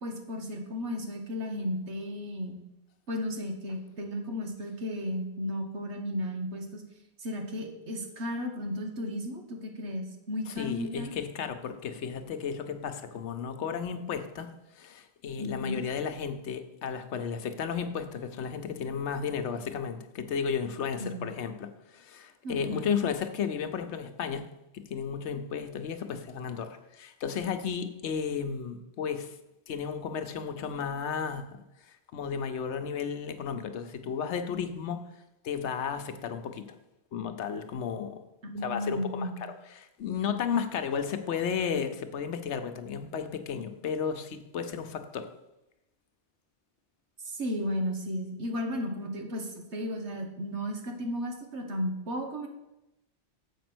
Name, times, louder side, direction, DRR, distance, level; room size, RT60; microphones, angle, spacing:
voice 1, 0.0-2.6 3.1-6.8 7.2-11.1 15.4-15.9 21.0-21.3 22.4-23.0 38.4-39.4 47.2-52.5, left 1 dB, 85° right, 3 dB, 1.6 m, -34 dB
voice 2, 10.5-24.5 24.7-29.3 29.7-31.5 31.9-35.0 35.4-36.7 37.1-38.2 38.6-45.3, left 7 dB, 90° left, 8 dB, 1.0 m, -33 dB
7.3 x 5.2 x 6.1 m, 0.92 s
omnidirectional pair, 1.1 m